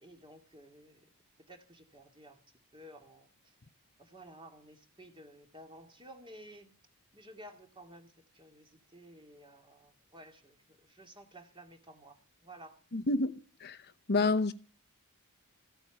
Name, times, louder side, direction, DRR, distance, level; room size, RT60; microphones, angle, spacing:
voice 1, 0.0-1.0 1.5-2.4 2.7-3.3 4.1-6.7 7.1-8.1 8.4-8.6 8.9-10.5 11.0-12.2 12.4-12.8, right 1 dB, 20° right, 2.3 m, -53 dB
voice 2, 12.9-13.8 14.1-14.5, left 3 dB, 50° left, 0.9 m, -29 dB
15.5 x 9.0 x 8.3 m
head